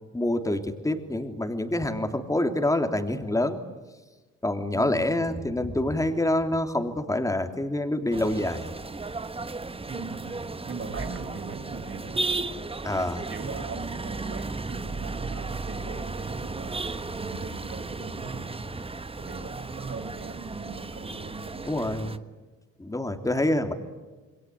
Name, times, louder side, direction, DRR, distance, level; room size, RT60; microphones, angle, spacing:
voice 1, 0.1-3.6 4.4-8.7 12.8-13.2 21.6-22.2 22.8-23.7, left 1 dB, 10° left, 6 dB, 3.2 m, -26 dB
voice 2, 4.7-5.1 9.9-10.4 10.6-12.3 13.3-16.8 17.1-18.7 19.2-22.2, right 4 dB, 45° right, 4 dB, 7.4 m, -39 dB
sound 1, 8.1-22.2, right 3 dB, 20° right, 1.3 m, -35 dB
28.0 x 22.0 x 9.2 m, 1.3 s
cardioid pair, 90°, 30 cm